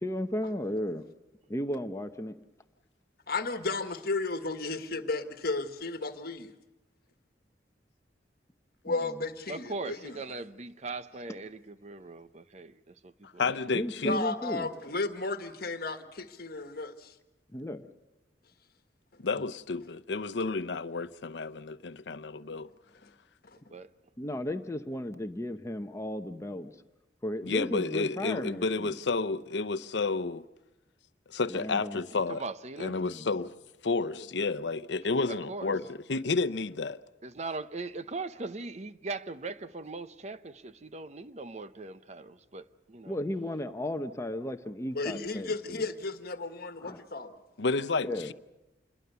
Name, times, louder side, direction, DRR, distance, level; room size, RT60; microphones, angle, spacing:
voice 1, 0.0-1.0 1.5-2.4 8.9-9.2 13.7-14.7 17.5-17.9 24.2-26.7 27.2-28.9 31.5-32.0 33.0-33.3 35.7-35.9 43.1-45.9 46.8-47.1 48.0-48.3, left 1 dB, 15° left, 0.9 m, -35 dB
voice 2, 3.3-6.5 8.8-10.2 14.0-17.1 23.0-23.1 23.4-23.7 34.1-34.2 44.9-47.4, left 3 dB, 60° left, 1.5 m, -34 dB
voice 3, 9.5-13.6 23.7-23.9 32.1-33.0 35.3-35.7 37.2-43.2, right 3 dB, 40° right, 0.8 m, -40 dB
voice 4, 13.2-14.2 19.2-22.7 27.4-30.4 31.3-32.4 32.8-33.5 33.8-37.0 47.6-48.3, left 4 dB, 75° left, 0.8 m, -31 dB
27.5 x 21.5 x 6.9 m
head